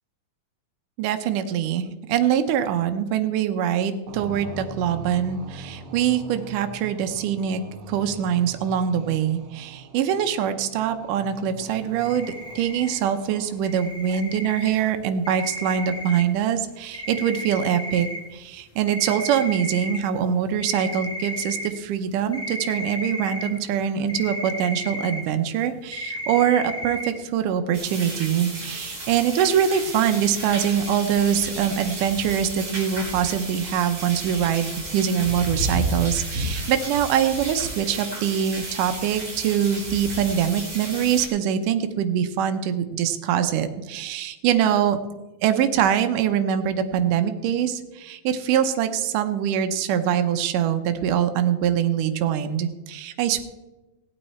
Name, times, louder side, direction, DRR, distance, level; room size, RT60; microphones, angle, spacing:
voice 1, 1.0-7.6 7.9-45.0 45.4-53.4, right 9 dB, 85° right, 7 dB, 2.4 m, -23 dB
sound 1, 4.1-14.0, right 3 dB, 65° right, 1.3 m, -42 dB
sound 2, 12.0-13.0 13.6-14.7 15.2-16.2 16.9-18.2 18.9-20.0 20.6-21.7 22.3-23.5 24.1-25.2 25.6-25.7 25.9-27.1, equal, 10° left, 0.9 m, -33 dB
sound 3, 27.7-41.3, right 2 dB, 40° right, 4.2 m, -32 dB
17.5 x 8.8 x 4.2 m, 1.1 s
omnidirectional pair, 3.6 m